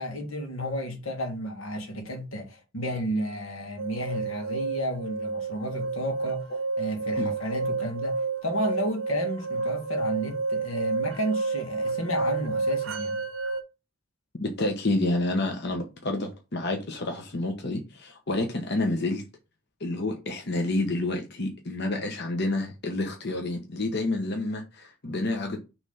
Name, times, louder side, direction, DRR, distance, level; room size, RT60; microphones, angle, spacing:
voice 1, 0.0-6.5 6.8-13.2, equal, 90° left, 1.9 m, -32 dB
sound 1, 3.8-13.6, right 4 dB, 85° right, 0.9 m, -30 dB
voice 2, 14.4-19.2 19.8-25.6, left 2 dB, 55° left, 1.0 m, -29 dB
6.0 x 3.3 x 5.5 m
head